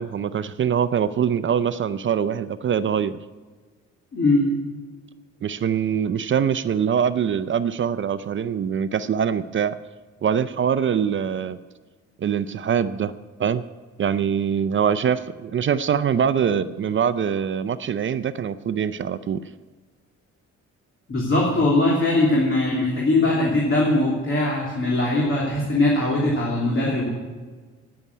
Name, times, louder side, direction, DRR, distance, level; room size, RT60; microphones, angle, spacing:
voice 1, 0.0-3.2 5.4-9.8 10.2-11.6 12.2-13.1 13.4-13.6 14.0-19.4, right 8 dB, 40° right, 13 dB, 0.5 m, -23 dB
voice 2, 4.1-4.4 21.1-27.1, left 2 dB, 40° left, -4 dB, 3.0 m, -21 dB
9.7 x 8.8 x 9.5 m, 1.4 s
cardioid pair, 90°, 30 cm